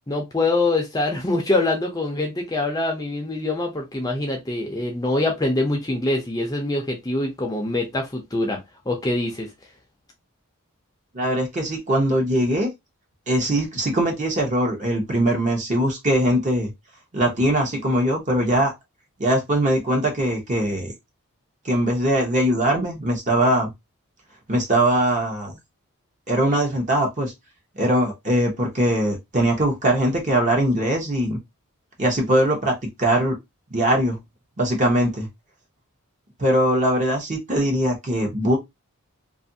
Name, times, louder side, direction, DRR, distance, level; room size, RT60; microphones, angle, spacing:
voice 1, 0.1-8.6 8.9-9.5, left 2 dB, 15° left, 0.5 m, -24 dB
voice 2, 11.1-12.7 13.3-16.7 17.1-18.7 19.2-20.9 21.6-23.7 24.5-25.5 26.3-27.3 27.8-31.4 32.0-32.7 33.0-33.4 33.7-34.2 34.6-35.3 36.4-38.6, right 1 dB, 35° right, 0.9 m, -21 dB
2.6 x 2.5 x 2.6 m
head